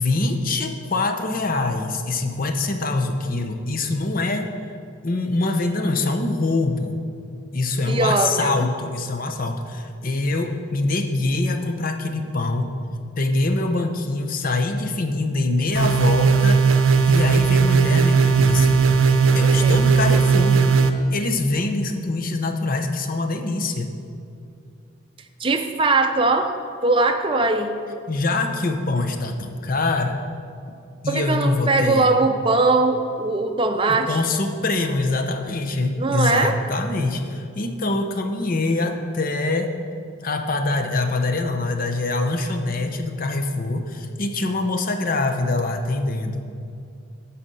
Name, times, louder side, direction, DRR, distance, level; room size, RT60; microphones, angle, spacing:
voice 1, 0.0-4.5 5.0-7.0 7.5-12.7 13.2-16.7 17.1-18.8 19.3-20.6 21.1-23.9 28.1-30.2 31.0-32.1 33.9-39.7 40.2-46.4, left 2 dB, 40° left, 6 dB, 0.7 m, -24 dB
voice 2, 7.9-8.7 19.3-19.7 20.1-20.2 25.4-26.5 26.8-27.8 31.1-34.2 36.0-36.6, right 3 dB, 25° right, 6 dB, 0.5 m, -21 dB
sound 1, 15.7-20.9, right 5 dB, 75° right, 0.7 m, -17 dB
12.0 x 4.2 x 7.5 m, 2.5 s
head